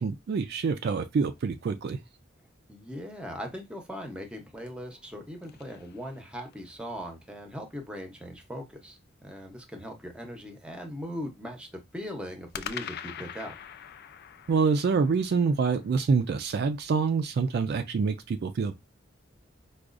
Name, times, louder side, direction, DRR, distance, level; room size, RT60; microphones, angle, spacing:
voice 1, 0.0-2.0 14.5-18.8, right 5 dB, 55° right, 0.3 m, -26 dB
voice 2, 2.7-11.7 11.9-13.5, equal, 5° right, 0.8 m, -39 dB
sound 1, 4.8-6.7 12.5-16.8, left 9 dB, 55° left, 0.3 m, -44 dB
4.7 x 2.3 x 2.5 m
head